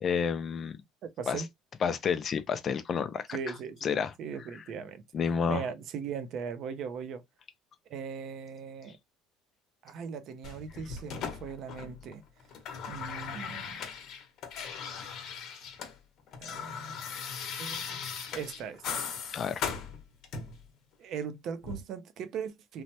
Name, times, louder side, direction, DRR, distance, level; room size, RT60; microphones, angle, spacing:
voice 1, 0.0-0.8 1.3-1.4 1.8-3.3 3.8-4.1 5.1-5.6 14.9-15.0 19.3-19.6, left 6 dB, 35° left, 0.4 m, -30 dB
voice 2, 1.2-1.5 3.3-3.9 4.2-5.0 5.5-7.2 7.9-9.0 9.8-12.2 12.9-13.8 16.4-17.0 17.6-18.0 18.3-19.0 21.0-22.8, right 6 dB, 50° right, 0.5 m, -39 dB
sound 1, 10.4-12.1 12.4-15.9 16.2-20.6 21.6-21.8, left 6 dB, 55° left, 0.8 m, -38 dB
3.1 x 2.1 x 2.8 m
cardioid pair, 135°, 0 cm